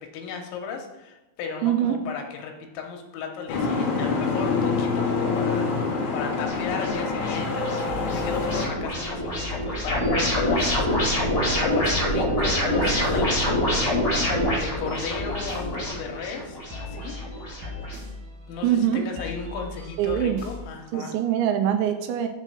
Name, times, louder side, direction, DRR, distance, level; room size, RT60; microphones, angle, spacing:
voice 1, 0.1-17.7 18.0-18.1 18.5-21.1, left 5 dB, 80° left, 2 dB, 3.3 m, -35 dB
voice 2, 1.6-2.0 18.6-19.0 20.0-20.4 20.9-22.3, right 10 dB, 80° right, 6 dB, 2.8 m, -23 dB
Boat Water vehicle, 3.5-8.7, left 4 dB, 65° left, 2.1 m, -26 dB
sound 1, 6.5-18.0, left 1 dB, 30° left, 1.3 m, -26 dB
sound 2, 7.9-20.7, left 2 dB, 50° right, 1.5 m, -39 dB
7.2 x 4.3 x 6.6 m, 1.0 s
omnidirectional pair, 5.5 m